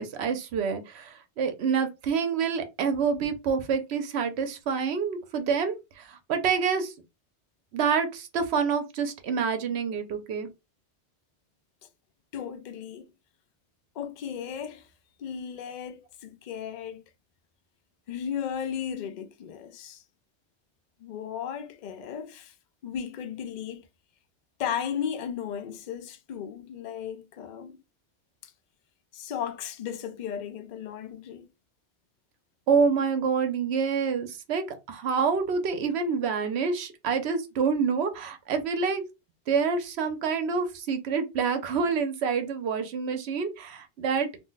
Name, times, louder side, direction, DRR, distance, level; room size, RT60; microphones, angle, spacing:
voice 1, 0.0-6.9 7.7-10.5 32.7-39.0 39.5-44.3, right 6 dB, 70° right, 0.9 m, -27 dB
voice 2, 12.3-13.1 14.0-14.9 15.2-17.0 18.1-20.0 21.0-22.5 22.8-23.9 24.6-27.8 28.4-28.5 29.1-31.5, left 8 dB, 60° left, 0.5 m, -35 dB
2.5 x 2.1 x 3.8 m
omnidirectional pair, 1.2 m